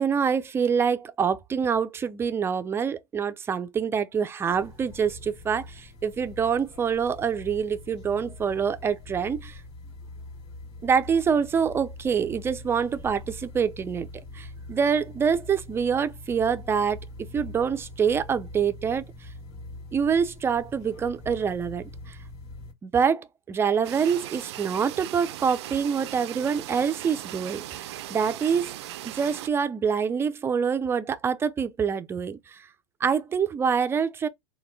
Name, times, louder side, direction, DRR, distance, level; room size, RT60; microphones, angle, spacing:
voice 1, 0.0-9.6 10.8-14.1 14.3-17.0 17.3-19.0 19.9-22.2 22.8-28.8 29.0-32.7 33.0-34.3, right 6 dB, 15° right, 0.4 m, -26 dB
sound 1, 4.5-22.7, left 2 dB, 70° left, 1.6 m, -43 dB
sound 2, 23.8-29.5, right 14 dB, 75° right, 0.4 m, -38 dB
4.1 x 2.2 x 3.3 m
supercardioid pair, 125°, 14 cm